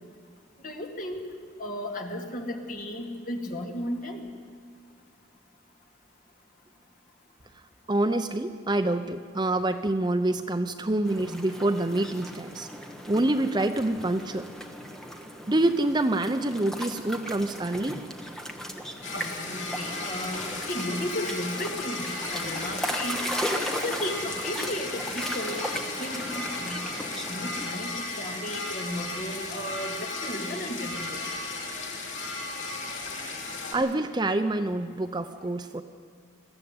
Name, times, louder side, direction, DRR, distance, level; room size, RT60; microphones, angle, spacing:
voice 1, 0.6-1.2 1.6-4.3 19.1-23.2 23.7-26.8 27.3-31.3, left 1 dB, 40° left, 2 dB, 2.2 m, -35 dB
voice 2, 7.9-12.7 13.1-14.5 15.5-18.0 33.7-35.8, right 2 dB, 20° right, 9 dB, 0.6 m, -26 dB
sound 1, 11.1-27.7, equal, ahead, 1.2 m, -37 dB
sound 2, 19.0-33.7, left 2 dB, 90° left, 6.3 m, -35 dB
21.0 x 14.5 x 9.6 m, 2.2 s
head